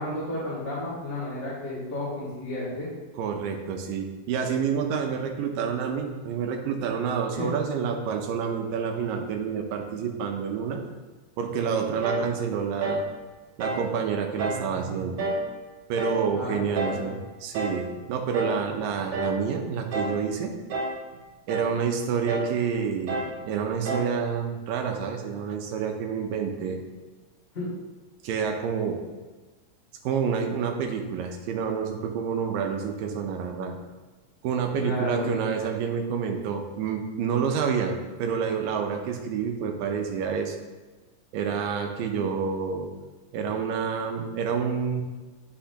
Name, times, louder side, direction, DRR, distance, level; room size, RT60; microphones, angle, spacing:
voice 1, 0.0-2.9 7.3-7.5 16.3-17.1 27.5-27.7 34.8-35.3, left 1 dB, 25° left, -9 dB, 2.2 m, -32 dB
voice 2, 3.2-10.8 11.4-13.0 13.6-15.2 15.9-20.5 21.5-26.8 28.2-29.0 30.0-33.8 34.4-37.9 38.2-40.6 41.3-42.9 43.3-45.0, right 6 dB, 90° right, 3 dB, 2.6 m, -28 dB
sound 1, 12.0-12.3 12.8-13.1 13.6-13.9 14.4-14.7 15.2-15.5 16.0-16.3 16.8-17.1 17.5-17.8 18.3-18.6 19.1-19.4 19.9-20.2 20.7-21.0 21.5-21.8 22.3-22.6 23.1-23.4 23.9-24.2, right 2 dB, 65° right, 1.5 m, -30 dB
10.0 x 6.1 x 2.9 m, 1.2 s
omnidirectional pair, 3.9 m